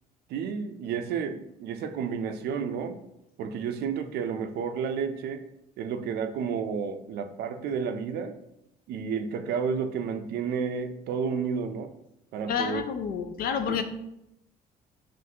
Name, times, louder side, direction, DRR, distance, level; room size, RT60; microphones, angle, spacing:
voice 1, 0.3-3.0 3.4-5.4 5.8-8.4 8.9-11.9 12.3-12.8, right 6 dB, 70° right, 8 dB, 0.4 m, -31 dB
voice 2, 12.5-13.8, left 7 dB, 60° left, 8 dB, 0.5 m, -29 dB
5.8 x 2.5 x 2.8 m, 0.84 s
cardioid pair, 110°, 17 cm